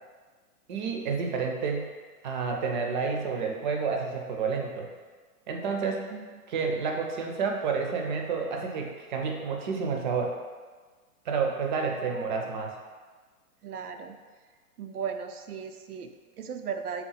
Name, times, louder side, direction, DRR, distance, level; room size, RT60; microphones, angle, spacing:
voice 1, 0.7-1.9 2.2-4.9 5.5-6.0 6.5-10.4 11.3-12.8, right 5 dB, 35° right, 2 dB, 0.5 m, -30 dB
voice 2, 6.1-6.4 12.1-12.5 13.6-14.2 14.8-17.1, right 6 dB, 85° right, 7 dB, 0.5 m, -37 dB
3.5 x 3.0 x 3.9 m, 1.4 s
figure-of-eight pair, 110°, 44 cm